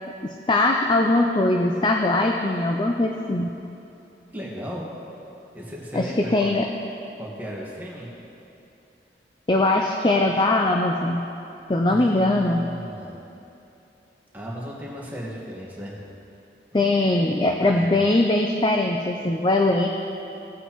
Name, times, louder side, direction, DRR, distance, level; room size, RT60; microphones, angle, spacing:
voice 1, 0.2-3.5 5.9-6.7 9.5-11.3 11.7-12.7 16.7-19.9, left 2 dB, 25° left, 2 dB, 0.4 m, -21 dB
voice 2, 4.3-4.9 5.5-6.5 7.2-8.1 11.9-13.2 14.3-15.9 16.7-17.9, equal, 10° right, -5 dB, 1.5 m, -36 dB
17.0 x 8.1 x 3.0 m, 2.8 s
head